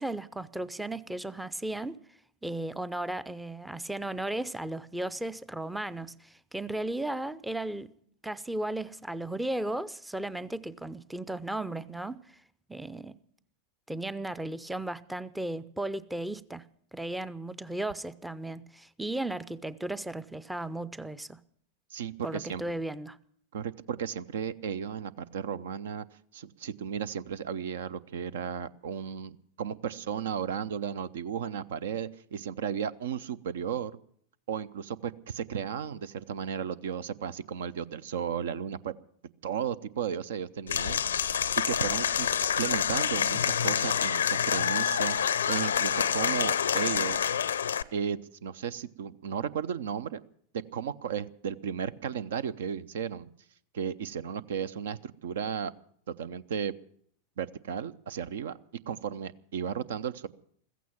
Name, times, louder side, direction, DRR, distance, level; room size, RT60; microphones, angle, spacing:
voice 1, 0.0-2.0 2.4-7.9 8.2-12.4 12.7-13.2 13.9-16.6 16.9-21.4 22.2-23.2, right 1 dB, 5° right, 0.5 m, -35 dB
voice 2, 21.9-22.6 23.5-26.1 26.3-33.9 34.5-38.9 39.4-41.0 41.7-42.3 42.6-45.2 45.5-47.3 47.9-50.2 50.5-53.3 53.7-55.7 56.1-56.7 57.4-58.6 58.9-60.3, right 8 dB, 60° right, 0.6 m, -34 dB
Applause / Crowd, 40.7-47.8, left 8 dB, 65° left, 0.5 m, -27 dB
15.5 x 15.0 x 5.8 m
figure-of-eight pair, 90°, 0 cm